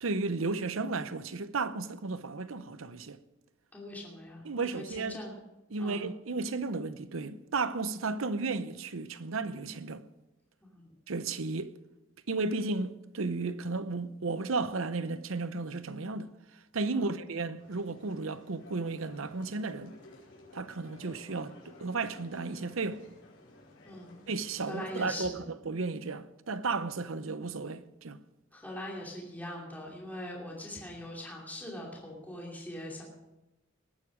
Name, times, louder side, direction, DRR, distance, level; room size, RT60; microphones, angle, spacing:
voice 1, 0.0-3.2 4.4-5.2 5.7-10.0 11.1-11.7 12.3-19.9 20.5-23.0 24.3-25.3 25.6-28.2, right 3 dB, 80° right, 0.8 m, -34 dB
voice 2, 3.7-5.3 5.8-6.1 10.6-10.9 16.9-17.1 23.8-24.2 24.6-25.4 28.5-33.0, left 1 dB, 10° left, 2.6 m, -42 dB
sound 1, 17.6-25.3, left 2 dB, 60° left, 5.2 m, -55 dB
19.5 x 9.5 x 5.1 m
head